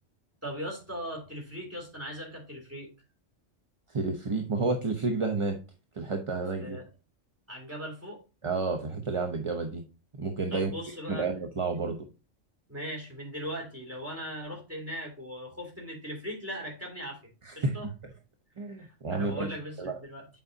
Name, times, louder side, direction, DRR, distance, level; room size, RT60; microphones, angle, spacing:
voice 1, 0.4-2.9 6.6-6.8 7.5-8.2 10.5-11.3 12.7-17.2 17.6-17.9 18.8-20.3, equal, 10° right, -1 dB, 3.0 m, -39 dB
voice 2, 3.9-5.6 5.9-6.8 8.4-9.8 10.2-10.7 11.1-12.0 17.4-17.7 18.6-19.5 19.8-20.0, right 3 dB, 30° right, 3 dB, 0.7 m, -30 dB
7.9 x 5.3 x 2.7 m, 0.30 s
omnidirectional pair, 1.3 m